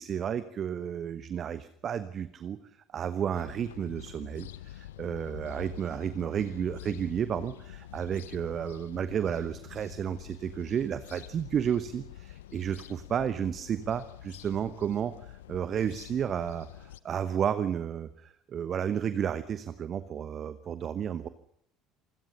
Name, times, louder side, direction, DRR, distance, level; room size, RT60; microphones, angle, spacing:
voice 1, 0.0-2.6 2.9-21.3, right 8 dB, 40° right, 14 dB, 1.2 m, -32 dB
sound 1, 3.3-17.0, left 14 dB, 70° left, 0.9 m, -47 dB
27.0 x 17.0 x 7.0 m, 0.70 s
figure-of-eight pair, 60°, 0 cm